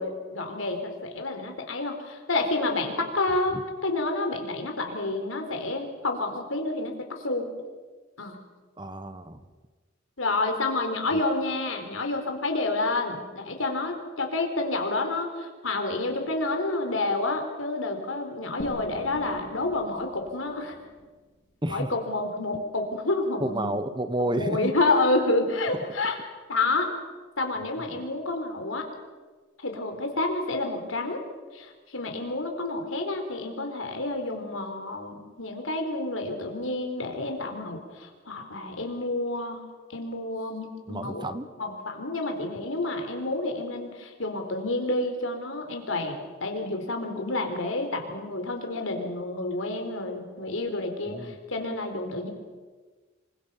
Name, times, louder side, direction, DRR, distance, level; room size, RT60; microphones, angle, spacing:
voice 1, 0.0-7.5 8.2-8.4 10.2-20.7 21.7-23.8 24.3-26.2 26.5-26.9 27.4-28.9 29.6-31.2 31.5-39.6 39.9-41.3 41.6-52.3, left 2 dB, 90° left, 4 dB, 4.2 m, -29 dB
voice 2, 8.8-9.4 11.1-11.2 21.6-21.9 23.4-24.7 27.9-28.0 40.9-41.5 51.1-51.4, right 1 dB, 25° right, 11 dB, 1.3 m, -30 dB
sound 1, 18.6-22.1, left 1 dB, 60° left, 3.2 m, -44 dB
27.0 x 24.5 x 5.8 m, 1.4 s
head